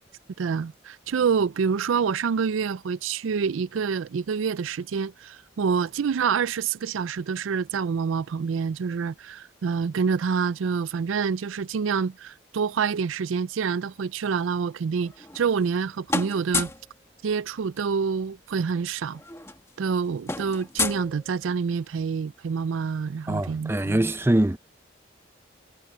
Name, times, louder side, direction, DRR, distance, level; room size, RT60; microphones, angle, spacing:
voice 1, 0.4-16.7 17.2-19.2 19.8-24.0, right 6 dB, 90° right, 0.4 m, -27 dB
sound 1, 15.0-15.8 16.1-16.9 18.3-18.4 18.6-18.8 19.1-21.7, left 3 dB, 15° left, 1.9 m, -31 dB
voice 2, 23.3-24.6, right 1 dB, 10° right, 0.5 m, -23 dB
head